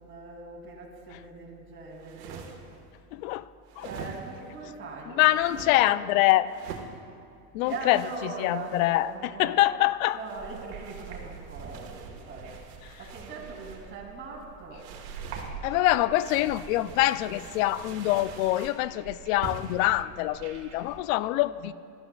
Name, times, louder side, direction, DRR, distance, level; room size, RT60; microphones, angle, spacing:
voice 1, 0.0-2.6 3.8-6.1 7.6-9.6 10.1-12.6 13.0-15.0, right 3 dB, 25° right, -2 dB, 2.8 m, -40 dB
sound 1, 1.9-2.8 3.7-4.5 5.3-5.7 6.5-6.9 7.6-9.1 10.1-13.9 14.7-15.5 16.1-18.8 19.4-19.9, right 6 dB, 80° right, 1.6 m, -45 dB
voice 2, 3.1-3.5 3.8-3.9 5.2-6.5 7.5-8.0 8.4-10.2 15.6-21.7, left 16 dB, 60° left, 17 dB, 0.5 m, -25 dB
sound 2, 10.3-21.0, right 6 dB, 50° right, 2.1 m, -45 dB
15.5 x 13.0 x 2.3 m, 2.4 s
hypercardioid pair, 110°, 47 cm